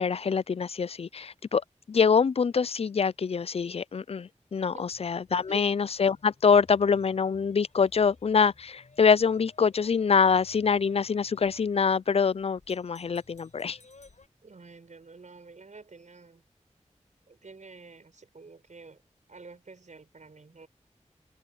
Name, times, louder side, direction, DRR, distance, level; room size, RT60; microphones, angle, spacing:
voice 1, 0.0-1.6 1.9-13.8, left 6 dB, 55° left, 0.4 m, -25 dB
sound 1, 4.6-14.3, left 3 dB, 75° left, 5.2 m, -58 dB
voice 2, 14.4-16.4 17.3-19.0 19.3-20.7, right 4 dB, 80° right, 6.8 m, -48 dB
wide cardioid pair, 55°, 12 cm